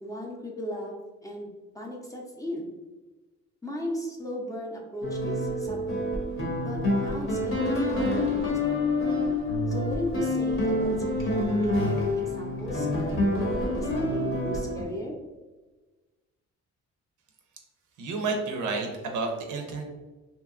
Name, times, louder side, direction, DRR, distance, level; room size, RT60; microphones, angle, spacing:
voice 1, 0.0-0.9 1.2-1.5 1.7-2.7 3.6-6.0 6.6-8.8 9.7-15.2, left 1 dB, 10° left, -2 dB, 0.5 m, -36 dB
sound 1, 5.0-14.8, left 1 dB, 45° left, 0.8 m, -27 dB
voice 2, 18.0-19.8, right 3 dB, 75° right, 3 dB, 0.6 m, -30 dB
2.8 x 2.2 x 2.4 m, 1.2 s
cardioid pair, 90°, 30 cm